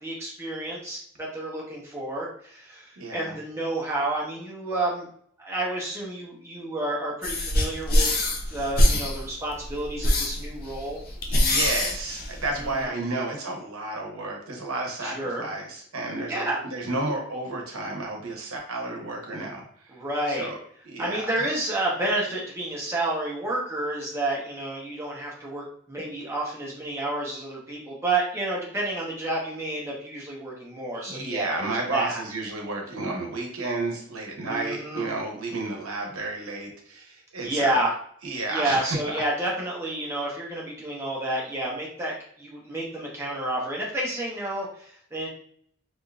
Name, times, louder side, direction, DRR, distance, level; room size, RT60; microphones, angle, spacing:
voice 1, 0.0-5.1 5.4-8.1 8.5-11.0 12.6-12.9 15.0-15.4 16.3-16.6 19.9-20.5 21.0-32.2 34.5-35.0 37.4-37.9 38.5-45.3, right 1 dB, 10° right, -4 dB, 0.8 m, -30 dB
voice 2, 3.0-3.4 11.3-19.9 20.3-20.6 20.8-21.3 30.9-37.9 38.2-39.2, right 2 dB, 85° right, 1 dB, 0.9 m, -32 dB
sound 1, 7.2-12.8, left 1 dB, 45° left, 0.5 m, -24 dB
3.5 x 2.6 x 2.4 m, 0.63 s
head